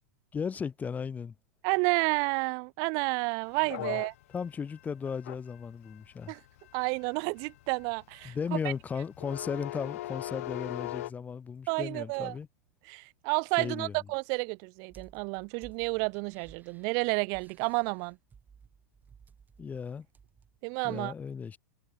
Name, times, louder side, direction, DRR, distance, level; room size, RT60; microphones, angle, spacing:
voice 1, 0.3-1.3 3.8-4.0 4.3-6.3 8.2-12.5 13.6-13.9 19.6-20.1 20.8-21.6, left 6 dB, 20° left, 0.8 m, -36 dB
voice 2, 1.6-4.1 6.3-6.4 6.7-8.3 11.7-12.3 12.9-18.2 20.6-21.1, right 37 dB, 45° right, 0.4 m, -30 dB
sound 1, 3.5-11.1, left 16 dB, 65° left, 0.4 m, -40 dB
sound 2, 14.9-20.6, right 6 dB, 20° right, 2.2 m, -57 dB
hypercardioid pair, 100°, 8 cm